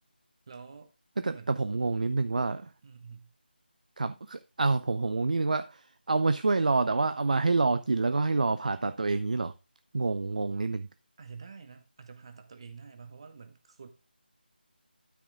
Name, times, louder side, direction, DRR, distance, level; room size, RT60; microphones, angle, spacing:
voice 1, 0.5-0.9 1.3-1.6 2.8-3.3 11.2-13.9, right 5 dB, 30° right, 1.2 m, -48 dB
voice 2, 1.2-2.7 4.0-9.5 9.9-10.9, right 3 dB, 45° right, 0.5 m, -27 dB
12.5 x 4.9 x 3.5 m
figure-of-eight pair, 160°, 6 cm